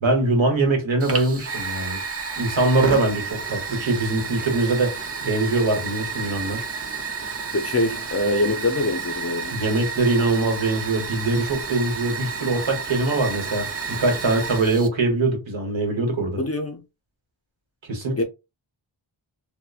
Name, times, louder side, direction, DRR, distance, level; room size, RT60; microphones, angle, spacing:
voice 1, 0.0-2.0 2.4-4.9 5.2-6.6 9.5-16.4 17.9-18.2, right 2 dB, 70° right, 1.1 m, -22 dB
Fire, 1.0-14.9, right 5 dB, 30° right, 0.5 m, -31 dB
voice 2, 7.5-9.6 16.4-16.8 18.2-18.3, left 2 dB, 35° left, 0.4 m, -24 dB
2.8 x 2.1 x 2.4 m
wide cardioid pair, 70°, 48 cm